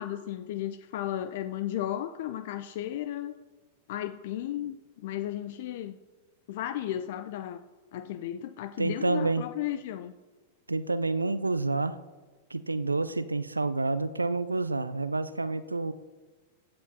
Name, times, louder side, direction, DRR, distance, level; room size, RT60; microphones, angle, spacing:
voice 1, 0.0-3.3 3.9-4.8 5.0-6.0 6.5-7.6 7.9-10.1, left 12 dB, 55° left, 11 dB, 0.4 m, -34 dB
voice 2, 8.8-9.5 10.7-12.0 12.5-15.9, right 3 dB, 85° right, 14 dB, 0.4 m, -28 dB
16.0 x 9.5 x 2.7 m, 1.3 s
figure-of-eight pair, 95°, 0 cm